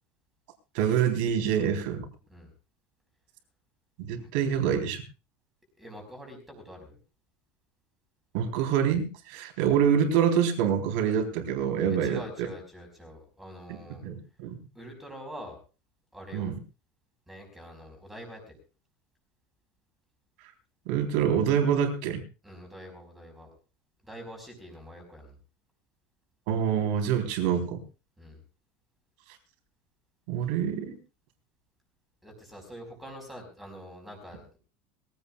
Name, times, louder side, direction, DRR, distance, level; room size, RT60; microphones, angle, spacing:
voice 1, 0.7-2.0 4.0-5.0 8.3-12.2 13.7-14.6 16.3-16.6 20.9-22.2 26.5-27.8 30.3-31.0, right 8 dB, 65° right, 5 dB, 3.8 m, -26 dB
voice 2, 5.8-7.0 12.0-14.0 14.7-15.6 16.1-16.5 17.3-18.6 22.4-23.5 24.0-25.4 28.2-28.4 32.2-34.6, equal, 5° right, 3 dB, 4.8 m, -45 dB
22.5 x 16.0 x 2.4 m, 0.33 s
cardioid pair, 175°, 5 cm